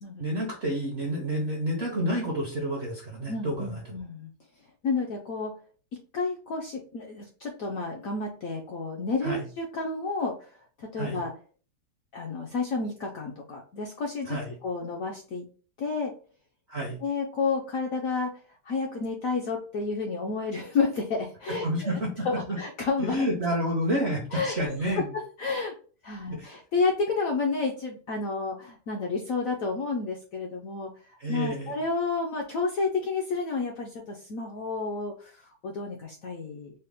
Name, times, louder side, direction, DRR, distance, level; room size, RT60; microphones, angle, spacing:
voice 1, 0.2-3.8 9.2-9.4 11.0-11.2 14.3-14.5 16.7-17.0 21.6-22.6 23.0-25.1 26.3-26.5 31.2-31.8, equal, 60° right, -1 dB, 0.6 m, -29 dB
voice 2, 3.3-4.3 4.8-5.5 6.1-10.5 10.8-11.3 12.1-15.5 15.8-16.1 17.0-18.3 18.6-23.2 24.3-25.0 25.4-25.7 26.0-36.7, left 4 dB, 70° left, 0 dB, 0.8 m, -31 dB
4.1 x 2.1 x 3.4 m, 0.40 s
omnidirectional pair, 2.0 m